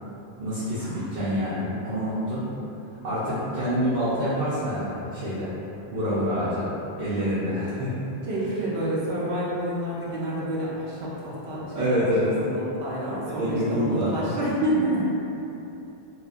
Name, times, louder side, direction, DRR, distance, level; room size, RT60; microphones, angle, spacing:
voice 1, 0.4-2.4 3.0-5.5 5.9-8.1 11.7-12.3 13.4-14.1, equal, 55° right, -12 dB, 0.7 m, -26 dB
voice 2, 8.2-15.1, right 1 dB, 80° right, -6 dB, 0.9 m, -29 dB
2.8 x 2.1 x 2.4 m, 2.9 s
omnidirectional pair, 1.1 m